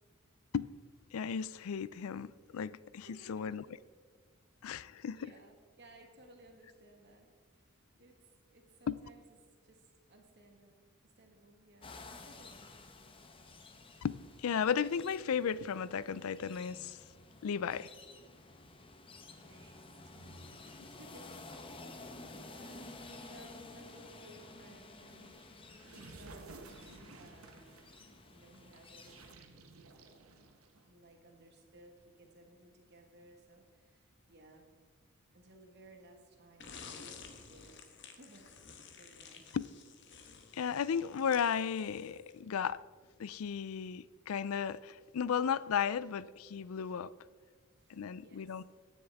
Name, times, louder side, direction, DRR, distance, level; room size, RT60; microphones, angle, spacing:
voice 1, 1.1-3.7 4.6-5.4 8.9-9.0 14.0-17.0 17.4-17.9 39.5-39.6 40.5-42.8 43.2-47.1 47.9-48.6, left 7 dB, 85° left, 0.4 m, -35 dB
voice 2, 3.1-3.6 4.6-8.2 8.5-9.2 9.6-10.9 11.2-11.9 12.3-12.9 19.0-21.9 22.3-26.7 27.1-30.0 30.9-34.7 35.3-38.7 39.0-39.5 47.8-48.6, right 1 dB, 55° right, 1.7 m, -60 dB
sound 1, 11.8-29.3, left 2 dB, 25° left, 0.8 m, -52 dB
sound 2, 25.1-31.0, right 3 dB, 85° right, 1.1 m, -55 dB
sound 3, 36.6-42.5, left 5 dB, 55° left, 1.1 m, -52 dB
15.0 x 10.0 x 3.5 m
head